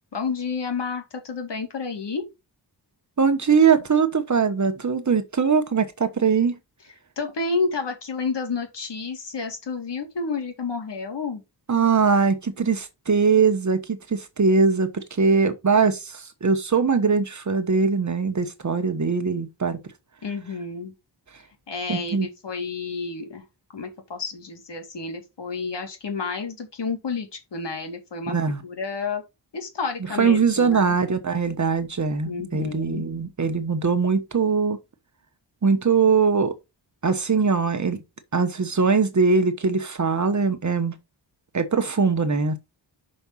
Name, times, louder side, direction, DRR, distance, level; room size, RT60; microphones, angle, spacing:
voice 1, 0.1-2.2 7.2-11.4 20.2-20.9 21.7-23.4 23.7-28.4 28.6-29.2 29.5-31.0 32.2-33.1, left 4 dB, 70° left, 2.4 m, -30 dB
voice 2, 3.2-6.6 11.7-19.8 21.9-22.3 28.3-28.6 30.2-34.8 35.6-36.5 37.0-38.0 38.3-40.9 41.5-42.6, right 5 dB, 40° right, 1.2 m, -21 dB
6.0 x 5.4 x 5.6 m
wide cardioid pair, 115°, 44 cm